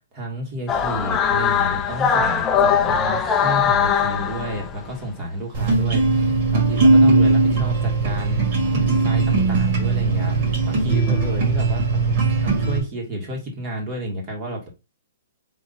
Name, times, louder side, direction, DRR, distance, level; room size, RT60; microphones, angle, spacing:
voice 1, 0.1-8.4 8.8-14.7, right 1 dB, 30° right, 1.6 m, -31 dB
sound 1, 0.7-5.0, left 7 dB, 15° left, 0.5 m, -21 dB
sound 2, 5.5-12.8, right 3 dB, 50° right, 2.0 m, -19 dB
3.9 x 2.9 x 4.1 m
hypercardioid pair, 150°, 0 cm